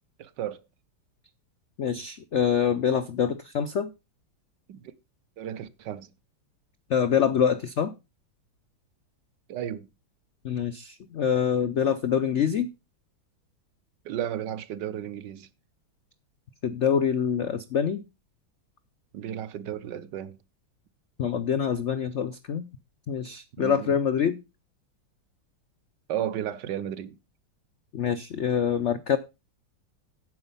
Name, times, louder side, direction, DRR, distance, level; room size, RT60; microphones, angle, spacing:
voice 1, 0.2-0.6 4.7-4.8 5.4-6.1 9.5-9.9 14.0-15.5 19.1-20.4 23.5-23.9 26.1-27.1, right 10 dB, 70° right, 1.4 m, -33 dB
voice 2, 1.8-3.9 6.9-7.9 10.4-12.7 16.6-18.0 21.2-22.6 23.1-24.4 27.9-29.2, left 8 dB, 75° left, 0.6 m, -25 dB
9.5 x 7.9 x 5.5 m
omnidirectional pair, 2.1 m